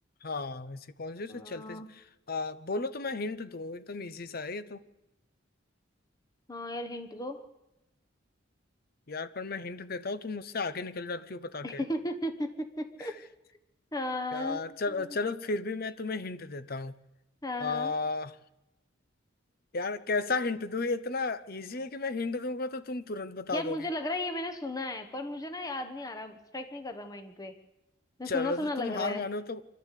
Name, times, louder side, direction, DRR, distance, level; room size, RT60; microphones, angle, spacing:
voice 1, 0.2-4.8 9.1-11.8 13.0-13.1 14.3-16.9 17.6-18.4 19.7-23.9 28.3-29.6, left 3 dB, 50° left, 0.8 m, -34 dB
voice 2, 1.3-1.9 6.5-7.5 11.6-13.2 13.9-14.6 15.0-15.1 17.4-17.9 23.5-27.5 28.2-29.2, left 1 dB, 20° left, 1.2 m, -35 dB
25.0 x 12.5 x 8.3 m
head